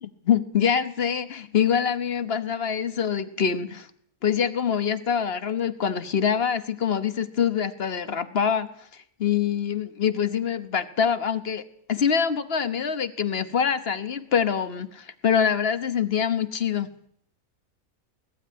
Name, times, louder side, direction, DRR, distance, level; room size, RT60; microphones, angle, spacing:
voice 1, 0.0-3.9 4.2-16.9, left 7 dB, 50° left, 12 dB, 1.3 m, -25 dB
19.0 x 14.5 x 9.5 m, 0.69 s
omnidirectional pair, 1.4 m